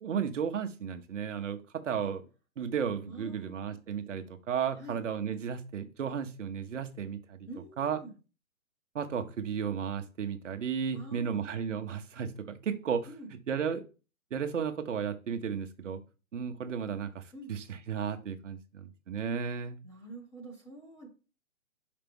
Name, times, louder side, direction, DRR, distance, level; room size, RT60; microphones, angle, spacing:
voice 1, 0.0-2.2 2.6-7.4 7.8-8.0 8.9-13.1 13.5-13.8 14.3-16.0 16.3-17.2 17.5-19.8, right 7 dB, 60° right, 8 dB, 1.0 m, -34 dB
voice 2, 3.1-3.8 4.8-5.0 7.5-8.2 10.9-11.5 13.1-13.3 17.3-17.5 19.8-21.1, right 2 dB, 5° left, 0 dB, 0.9 m, -47 dB
5.6 x 5.2 x 3.5 m, 0.33 s
hypercardioid pair, 145°, 42 cm